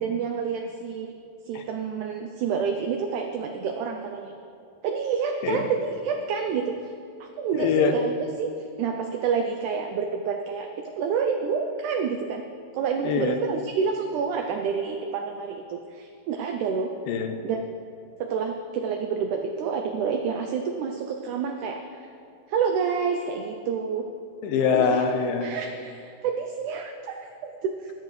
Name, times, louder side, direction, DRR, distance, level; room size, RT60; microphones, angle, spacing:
voice 1, 0.0-1.1 1.5-4.3 4.8-6.9 7.2-8.5 8.8-12.4 12.7-16.9 17.4-17.7 18.2-22.1 22.5-24.1 24.7-25.0 25.4-27.9, right 6 dB, 90° right, 5 dB, 1.7 m, -28 dB
voice 2, 7.5-8.0 13.0-13.4 17.1-17.4 24.4-25.5, left 6 dB, 85° left, 6 dB, 2.5 m, -24 dB
14.0 x 12.5 x 3.2 m, 2.5 s
omnidirectional pair, 4.2 m